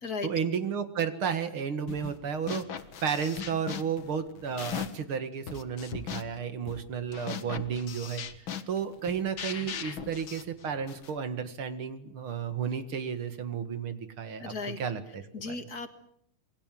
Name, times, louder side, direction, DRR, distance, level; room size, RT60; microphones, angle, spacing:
voice 1, 0.2-8.2 8.7-15.5, right 7 dB, 70° right, 9 dB, 2.7 m, -33 dB
sound 1, 1.9-2.2 2.5-5.1 5.5-11.2, left 8 dB, 65° left, 2.2 m, -39 dB
voice 2, 14.4-14.8 15.3-15.9, left 4 dB, 45° left, 7 dB, 2.3 m, -35 dB
27.5 x 22.0 x 7.7 m, 0.71 s
omnidirectional pair, 2.4 m